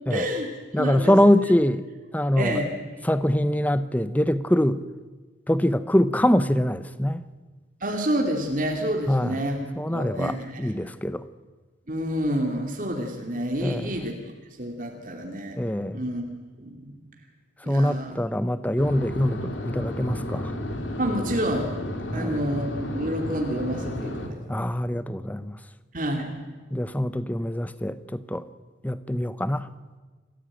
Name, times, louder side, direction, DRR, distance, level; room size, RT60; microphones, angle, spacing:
voice 1, 0.1-0.5 0.8-1.2 2.3-2.7 7.8-9.6 9.9-10.7 11.9-14.1 14.6-15.6 15.9-16.2 16.6-16.9 17.6-18.2 21.0-21.7 22.1-24.4 25.9-26.4, equal, 45° right, 2 dB, 2.6 m, -28 dB
voice 2, 0.7-1.9 2.1-2.6 3.0-4.8 5.5-7.2 9.1-9.4 9.8-11.2 13.6-13.9 15.6-16.0 17.6-20.5 22.1-22.4 24.5-25.6 26.7-28.5 28.8-29.7, left 1 dB, 10° left, 14 dB, 0.7 m, -23 dB
sound 1, 18.8-24.3, left 1 dB, 90° left, 3.1 m, -32 dB
27.0 x 15.0 x 9.0 m, 1.4 s
head